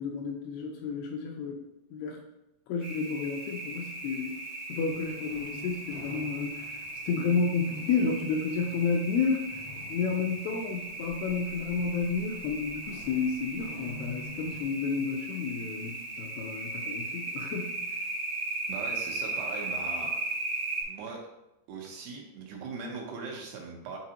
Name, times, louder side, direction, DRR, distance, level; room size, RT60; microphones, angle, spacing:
voice 1, 0.0-1.6 1.9-2.2 2.7-4.4 4.7-9.6 9.9-17.8, left 5 dB, 80° left, 1 dB, 2.4 m, -31 dB
sound 1, 2.8-20.8, right 2 dB, 50° right, 1.3 m, -37 dB
sound 2, 4.9-14.6, left 2 dB, 65° left, 1.6 m, -49 dB
voice 2, 18.7-20.1 20.9-21.2 21.7-24.0, right 4 dB, 75° right, 0 dB, 2.8 m, -40 dB
8.5 x 4.0 x 2.9 m, 0.90 s
omnidirectional pair, 5.0 m